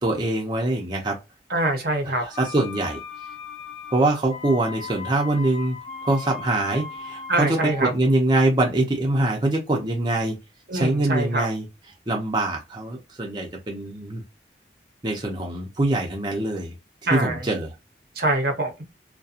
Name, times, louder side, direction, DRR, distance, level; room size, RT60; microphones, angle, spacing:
voice 1, 0.0-1.1 2.2-3.0 3.9-5.8 6.0-10.3 10.7-11.6 12.1-14.2 15.0-16.7 17.1-17.7, right 2 dB, 25° right, 0.6 m, -23 dB
voice 2, 1.5-2.2 7.3-7.9 10.7-11.5 17.1-17.5 18.2-18.7, right 2 dB, 60° right, 0.7 m, -24 dB
sound 1, 2.3-7.8, left 5 dB, 35° left, 0.6 m, -38 dB
2.7 x 2.2 x 2.4 m
head